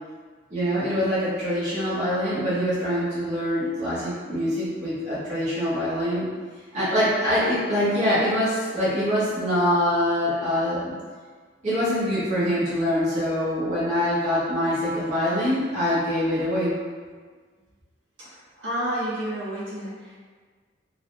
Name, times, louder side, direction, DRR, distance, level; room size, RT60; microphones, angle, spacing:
voice 1, 0.5-6.2 6.7-10.9 11.6-16.8, equal, 35° right, -12 dB, 0.9 m, -24 dB
voice 2, 18.2-20.1, equal, 85° right, -11 dB, 1.4 m, -30 dB
3.3 x 2.2 x 2.6 m, 1.5 s
head